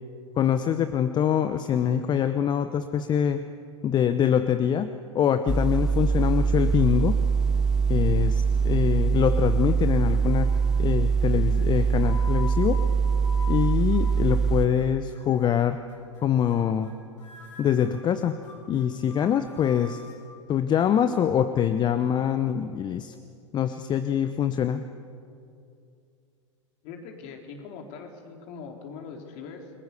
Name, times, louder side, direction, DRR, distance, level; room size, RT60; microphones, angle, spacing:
voice 1, 0.4-3.4 3.8-7.2 7.9-10.5 10.8-12.8 13.5-15.8 16.2-16.9 17.6-18.4 18.7-20.0 20.5-23.1 23.5-24.9, left 9 dB, 30° left, 11 dB, 0.9 m, -24 dB
sound 1, 5.5-14.7, right 5 dB, 5° right, 0.5 m, -23 dB
sound 2, 10.3-10.8 11.5-14.8 15.1-15.5 15.9-16.2 16.5-16.9 17.2-20.2, left 3 dB, 80° left, 6.0 m, -44 dB
voice 2, 26.8-29.7, left 5 dB, 45° left, 2 dB, 4.0 m, -41 dB
29.0 x 21.0 x 6.9 m, 2.5 s
figure-of-eight pair, 95°, 16 cm